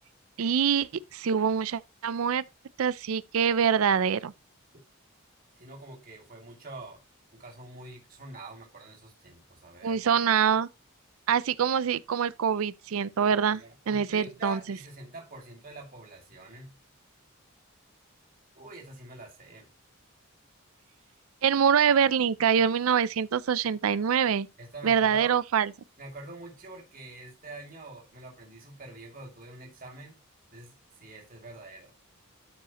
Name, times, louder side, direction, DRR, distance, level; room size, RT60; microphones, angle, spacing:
voice 1, 0.4-2.4 2.8-4.3 9.8-10.7 11.3-14.6 21.4-24.5 24.8-25.7, right 7 dB, 75° right, 0.4 m, -25 dB
voice 2, 5.6-7.0 7.3-10.0 13.5-16.8 18.5-19.7 24.6-25.3 26.0-30.2 30.5-31.9, right 2 dB, 40° right, 2.6 m, -45 dB
12.5 x 4.9 x 3.0 m
head